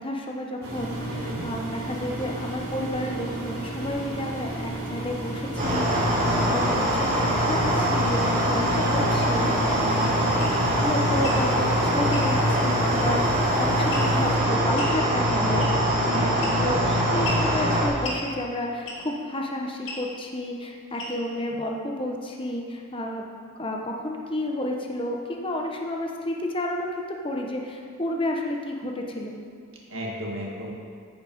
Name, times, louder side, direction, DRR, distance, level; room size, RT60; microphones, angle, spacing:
voice 1, 0.0-6.6 6.9-7.1 7.3-10.4 10.8-23.2 23.6-29.4, left 1 dB, 25° left, 1 dB, 1.0 m, -31 dB
Engine, 0.6-14.4, right 1 dB, 80° right, 3.2 m, -34 dB
voice 2, 1.1-1.4 6.3-6.6 9.7-10.1 16.0-16.5 29.9-30.7, equal, 65° right, -2 dB, 1.8 m, -34 dB
sound 1, 5.6-17.9, equal, 40° right, 2.5 m, -23 dB
sound 2, 10.4-10.6 11.1-11.4 12.1-12.3 13.9-14.2 14.8-15.0 15.6-15.9 16.4-16.8 17.2-17.5 18.0-18.2 18.9-19.2 19.8-20.0 21.0-21.3, left 2 dB, 60° left, 2.2 m, -35 dB
14.5 x 5.6 x 5.3 m, 2.1 s
head